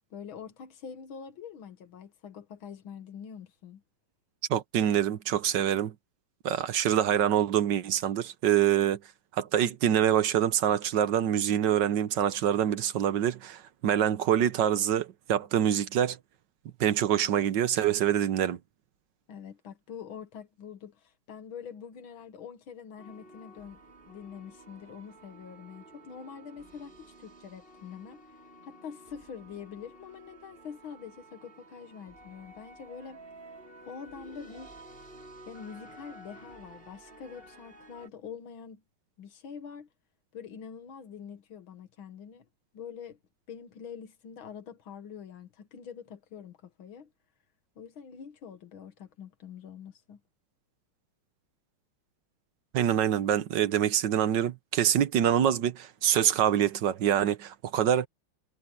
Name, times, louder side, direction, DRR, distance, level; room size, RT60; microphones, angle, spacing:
voice 1, 0.1-3.8 19.3-28.2 28.6-33.2 33.9-34.7 35.5-38.8 39.2-39.9 40.3-42.5 42.7-43.2 43.5-47.1 47.8-50.2, left 7 dB, 70° left, 2.3 m, -45 dB
voice 2, 4.5-5.9 6.4-9.0 9.3-16.2 16.8-18.6 52.7-58.1, right 10 dB, 65° right, 1.4 m, -25 dB
sound 1, 23.0-38.1, right 1 dB, 25° right, 5.0 m, -52 dB
omnidirectional pair, 2.3 m